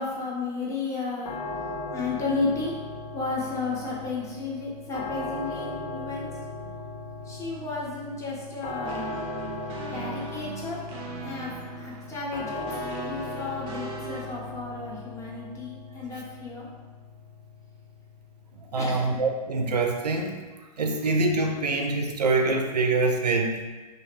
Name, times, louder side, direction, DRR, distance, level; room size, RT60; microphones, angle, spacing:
voice 1, 0.0-2.8 3.1-6.5 7.2-9.1 9.9-10.8 11.2-12.7 13.0-16.7 18.8-19.1, left 3 dB, 15° left, -4 dB, 0.6 m, -33 dB
sound 1, 1.2-20.1, left 2 dB, 60° left, 0.5 m, -38 dB
sound 2, 8.8-14.2, right 4 dB, 25° right, 0.4 m, -40 dB
voice 2, 18.7-20.4 20.8-23.6, right 3 dB, 85° right, 3 dB, 0.4 m, -25 dB
2.5 x 2.1 x 3.2 m, 1.3 s
figure-of-eight pair, 105°, 20 cm